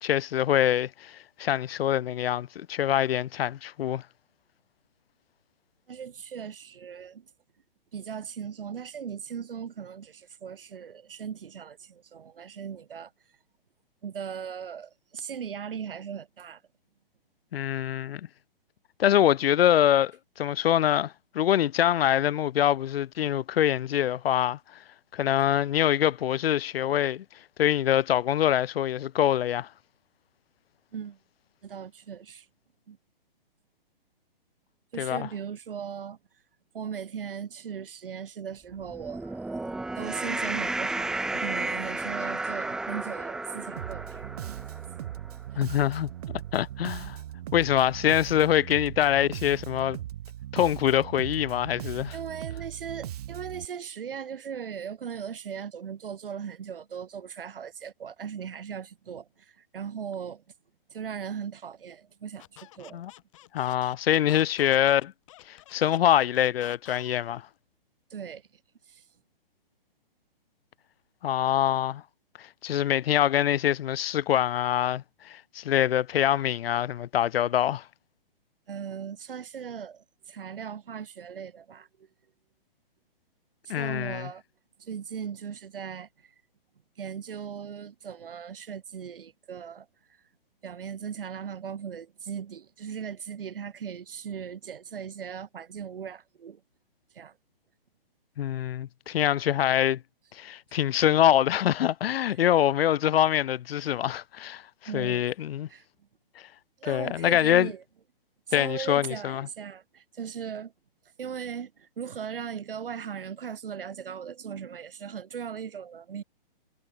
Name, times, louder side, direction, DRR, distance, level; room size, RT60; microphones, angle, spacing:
voice 1, 0.0-4.0 17.5-18.2 19.0-20.1 20.4-24.6 25.1-27.2 27.6-29.7 35.0-35.3 45.6-47.2 47.5-50.0 50.5-52.1 62.9-63.1 63.5-65.1 65.5-67.4 71.2-72.0 72.4-77.8 83.7-84.3 98.4-100.0 100.3-104.6 104.9-105.7 106.9-107.7 108.5-109.5, left 11 dB, 85° left, 0.5 m, -24 dB
voice 2, 5.9-7.3 7.9-13.1 14.0-16.6 30.9-31.2 31.6-32.5 32.9-33.0 34.9-36.2 36.7-39.7 40.0-44.6 52.1-60.4 60.9-63.0 68.1-68.4 68.9-69.0 78.7-82.1 83.7-84.4 84.8-86.3 87.0-89.9 90.6-96.6 97.1-97.3 104.9-105.3 105.7-105.8 106.8-107.8 108.5-110.7 111.2-116.2, right 7 dB, 65° right, 7.1 m, -38 dB
sound 1, 38.8-45.4, right 2 dB, ahead, 1.0 m, -33 dB
Bass guitar, 43.8-53.6, right 12 dB, 40° right, 2.2 m, -39 dB
Squeak, 62.4-67.4, left 17 dB, 35° left, 5.4 m, -49 dB
hypercardioid pair, 160°, 29 cm